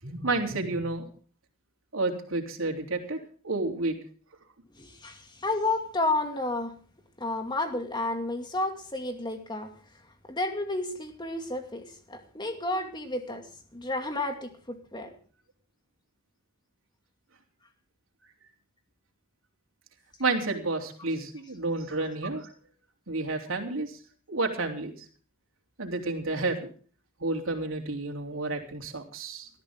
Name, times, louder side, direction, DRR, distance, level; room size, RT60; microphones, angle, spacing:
voice 1, 0.0-1.1 1.9-3.2 3.4-4.0 20.2-22.5 23.1-24.0 24.3-25.1 25.8-26.7 27.2-29.5, right 3 dB, 85° right, 2 dB, 3.4 m, -30 dB
voice 2, 4.8-6.8 7.2-9.7 10.3-15.1, left 2 dB, 20° left, 5 dB, 2.3 m, -31 dB
20.0 x 13.5 x 3.7 m, 0.41 s
head